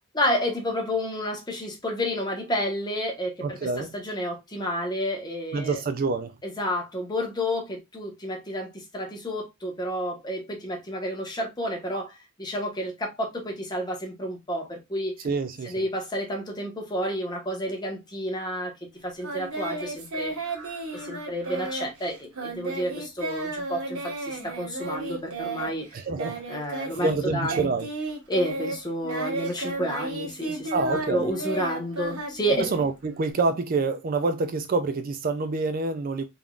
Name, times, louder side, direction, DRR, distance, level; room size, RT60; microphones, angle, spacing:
voice 1, 0.1-5.8 6.4-15.1 15.6-18.7 19.0-20.3 20.9-25.9 26.5-27.7 28.3-30.7 31.1-32.7, equal, 20° left, 1.1 m, -30 dB
voice 2, 3.4-3.9 5.5-6.3 15.2-15.8 25.9-26.4 27.0-27.9 30.7-31.3 32.6-36.2, right 3 dB, 40° right, 0.4 m, -27 dB
Singing, 19.2-27.2 27.4-33.3, right 2 dB, 85° right, 1.4 m, -33 dB
3.6 x 3.6 x 2.3 m
head